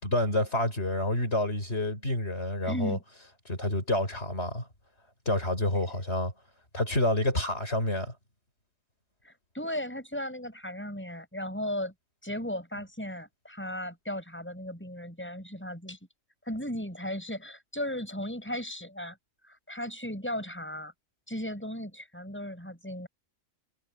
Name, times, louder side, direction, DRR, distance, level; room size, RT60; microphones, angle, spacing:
voice 1, 0.0-3.0 3.5-4.7 5.3-6.3 6.7-8.1, left 1 dB, 50° left, 6.0 m, -28 dB
voice 2, 2.6-3.0 9.2-11.9 12.2-16.0 16.4-19.2 19.4-20.9 21.3-23.1, left 1 dB, 10° left, 7.4 m, -36 dB
omnidirectional pair, 1.5 m